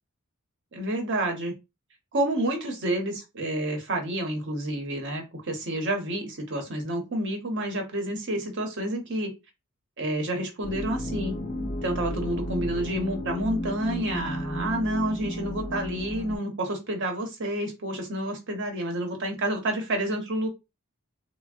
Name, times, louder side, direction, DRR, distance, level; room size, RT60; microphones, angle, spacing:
voice 1, 0.7-1.5 2.1-9.3 10.0-11.3 11.8-20.5, right 1 dB, 55° right, 3 dB, 0.9 m, -29 dB
sound 1, 10.6-16.4, equal, 40° left, 0.5 m, -33 dB
3.4 x 2.2 x 2.4 m, 0.24 s
head